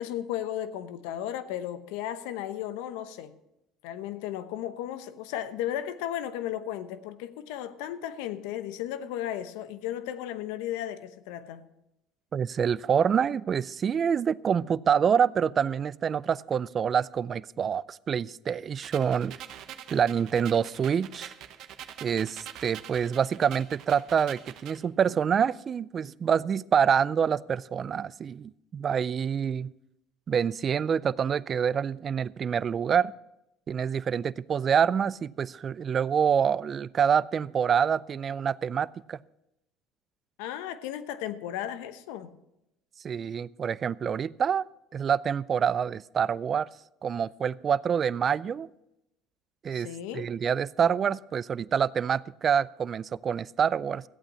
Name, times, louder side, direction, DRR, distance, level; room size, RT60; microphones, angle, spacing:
voice 1, 0.0-3.3 3.8-11.7 40.4-42.3 49.7-50.3, left 11 dB, 80° left, 0.9 m, -35 dB
voice 2, 12.3-19.4 19.9-21.3 22.0-29.7 30.3-33.1 33.7-39.2 43.0-44.6 44.9-46.7 47.0-48.7 49.6-49.9 50.1-54.0, right 7 dB, 40° right, 0.3 m, -26 dB
sound 1, 18.8-24.8, right 10 dB, 65° right, 0.9 m, -45 dB
14.5 x 8.6 x 5.6 m
supercardioid pair, 95°, 0 cm